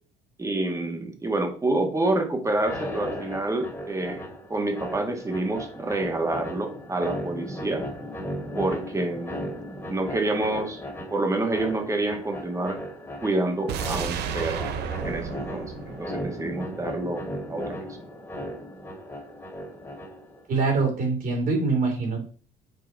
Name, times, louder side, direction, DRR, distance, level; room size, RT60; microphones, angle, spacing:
voice 1, 0.4-7.9 8.5-9.5 9.9-10.8 11.1-12.8 13.2-14.7 15.0-17.9, right 2 dB, 20° right, 4 dB, 1.7 m, -28 dB
sound 1, 2.6-20.4, equal, 15° left, 2.3 m, -36 dB
sound 2, 13.7-16.8 17.1-17.2, right 8 dB, 75° right, 0.9 m, -33 dB
voice 2, 20.5-22.2, right 3 dB, 60° right, 1 dB, 3.2 m, -24 dB
6.4 x 4.5 x 4.5 m, 0.40 s
cardioid pair, 110°, 17 cm